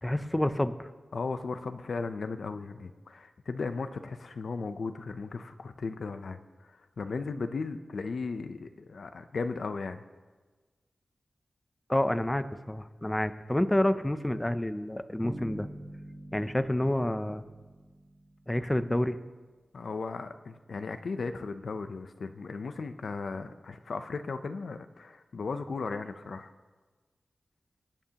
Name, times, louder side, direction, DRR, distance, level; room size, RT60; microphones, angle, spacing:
voice 1, 0.0-0.9 11.9-15.7 16.3-17.4 18.5-19.2, left 1 dB, 15° left, 11 dB, 0.5 m, -28 dB
voice 2, 1.1-10.0 19.7-26.5, left 4 dB, 70° left, 9 dB, 0.6 m, -36 dB
Bass guitar, 15.2-19.0, right 1 dB, 20° right, 1.1 m, -45 dB
25.5 x 9.2 x 2.9 m, 1.3 s
wide cardioid pair, 120°, 0 cm